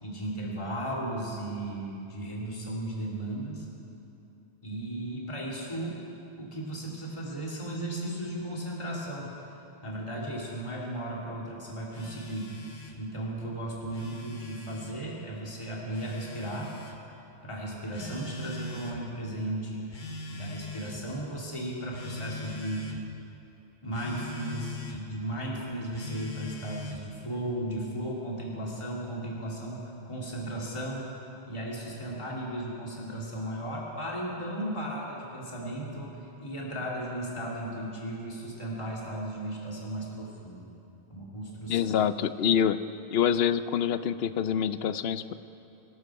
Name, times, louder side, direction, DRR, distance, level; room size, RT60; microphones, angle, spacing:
voice 1, 0.0-3.7 4.6-6.0 6.4-9.3 9.8-12.5 13.0-16.7 17.4-19.9 20.3-22.8 23.8-31.1 31.5-40.7 41.1-41.9, right 1 dB, 25° left, -4 dB, 2.5 m, -35 dB
Telephone, 11.9-13.0 13.8-15.0 15.9-17.0 17.9-19.0 19.9-21.1 21.9-23.0 23.9-25.0 25.9-27.1, left 3 dB, 45° left, 1.4 m, -41 dB
voice 2, 41.7-42.8 43.1-45.3, left 8 dB, 65° left, 13 dB, 0.8 m, -26 dB
25.0 x 12.0 x 4.7 m, 2.8 s
omnidirectional pair, 1.2 m